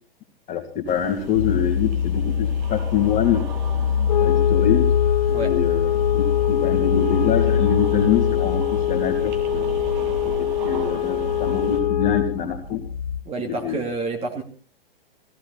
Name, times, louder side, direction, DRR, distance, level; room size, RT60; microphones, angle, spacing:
voice 1, 0.5-3.4 4.2-4.9 5.4-9.8 10.2-12.8 13.6-13.8, left 8 dB, 25° left, 3 dB, 3.0 m, -25 dB
sound 1, 0.9-11.8, right 5 dB, 50° right, 3.5 m, -35 dB
sound 2, 1.3-13.2, left 7 dB, 90° left, 1.7 m, -25 dB
sound 3, 4.1-12.4, left 12 dB, 50° left, 1.1 m, -24 dB
voice 2, 13.2-14.4, right 3 dB, 20° right, 2 dB, 2.6 m, -28 dB
17.0 x 16.0 x 4.2 m, 0.38 s
figure-of-eight pair, 115°, 30 cm